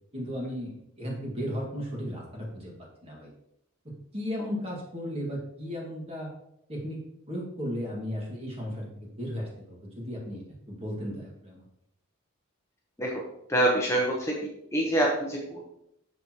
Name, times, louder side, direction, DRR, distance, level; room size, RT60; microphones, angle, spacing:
voice 1, 0.1-2.7 3.0-3.3 3.8-6.3 6.7-7.0 7.3-11.6, equal, 25° right, -2 dB, 1.9 m, -35 dB
voice 2, 13.5-14.3 14.7-15.7, right 1 dB, 15° left, -2 dB, 0.9 m, -25 dB
6.7 x 6.3 x 3.0 m, 0.78 s
head